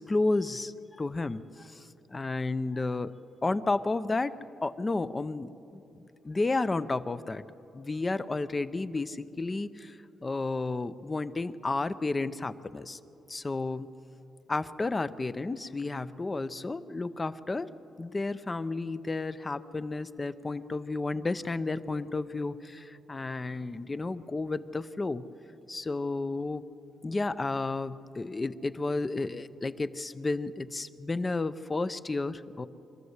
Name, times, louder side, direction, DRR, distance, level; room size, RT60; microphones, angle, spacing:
voice 1, 0.0-3.1 3.4-4.3 4.6-5.8 6.2-7.4 7.7-13.0 13.3-13.9 14.5-17.7 18.0-25.2 25.7-26.6 27.0-32.7, left 3 dB, 25° left, 13 dB, 0.6 m, -32 dB
24.0 x 13.5 x 8.1 m, 2.8 s
cardioid pair, 105°, 0 cm